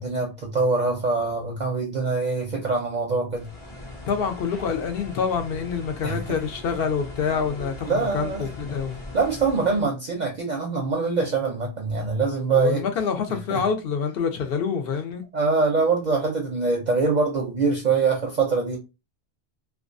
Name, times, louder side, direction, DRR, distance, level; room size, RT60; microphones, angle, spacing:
voice 1, 0.0-3.5 6.0-6.2 7.9-8.5 9.1-12.8 13.5-13.6 15.3-18.8, right 4 dB, 55° right, 0.5 m, -24 dB
sound 1, 3.3-9.9, left 2 dB, 35° left, 0.6 m, -40 dB
voice 2, 4.1-9.0 12.5-15.2, left 6 dB, 65° left, 0.7 m, -26 dB
2.3 x 2.3 x 2.5 m
omnidirectional pair, 1.1 m